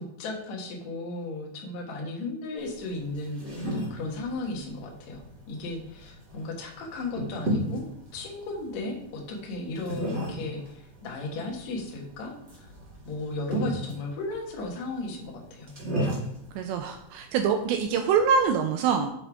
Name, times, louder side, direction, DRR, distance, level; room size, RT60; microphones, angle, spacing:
voice 1, 0.0-7.8 8.1-12.7 13.0-15.8, left 2 dB, 70° left, 0 dB, 1.7 m, -35 dB
sound 1, 2.6-18.4, equal, 60° right, 0.6 m, -36 dB
voice 2, 16.6-19.1, right 6 dB, 85° right, 5 dB, 2.5 m, -24 dB
8.3 x 6.9 x 3.6 m, 0.77 s
omnidirectional pair, 5.6 m